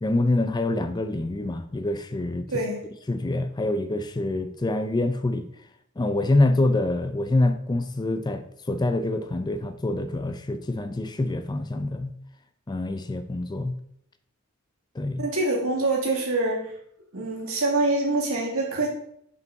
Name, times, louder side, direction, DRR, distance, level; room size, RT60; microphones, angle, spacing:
voice 1, 0.0-2.5 3.1-5.5 6.0-12.1 12.7-13.8 14.9-15.2, left 2 dB, 20° left, 9 dB, 0.4 m, -26 dB
voice 2, 15.2-16.7 17.1-18.9, right 2 dB, 80° right, -2 dB, 2.0 m, -25 dB
5.5 x 5.4 x 4.5 m, 0.71 s
head